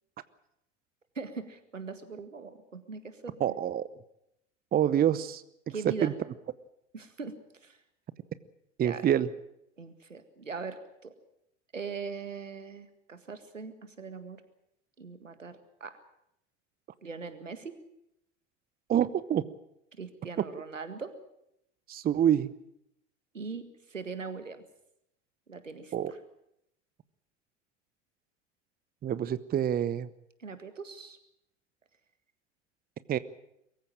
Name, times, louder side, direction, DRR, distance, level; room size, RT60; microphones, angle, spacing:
voice 1, 1.2-3.5 5.7-6.1 6.9-7.4 7.6-7.8 8.8-9.1 9.8-11.1 11.7-14.4 15.0-16.0 17.0-17.7 20.0-21.1 23.3-24.6 25.5-26.2 30.4-31.2, right 4 dB, 90° right, 11 dB, 1.9 m, -41 dB
voice 2, 3.4-3.9 4.7-5.4 5.8-6.1 8.8-9.3 18.9-19.5 21.9-22.5 25.9-26.1 29.0-30.1 33.1-33.2, right 10 dB, 25° right, 17 dB, 0.8 m, -26 dB
23.0 x 15.0 x 8.8 m, 0.80 s
figure-of-eight pair, 80°, 37 cm